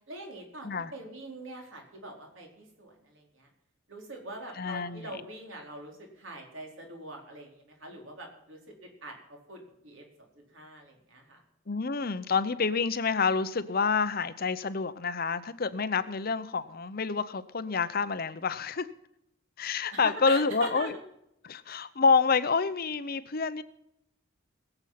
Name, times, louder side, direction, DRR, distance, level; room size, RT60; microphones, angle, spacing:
voice 1, 0.1-3.5 3.9-8.6 9.0-10.1 10.5-11.4 19.9-20.9, right 1 dB, 70° right, 1 dB, 4.4 m, -43 dB
voice 2, 4.6-5.2 11.7-18.9 19.6-21.0 21.4-23.6, left 5 dB, 45° left, 13 dB, 0.7 m, -28 dB
21.0 x 7.9 x 5.7 m, 0.78 s
head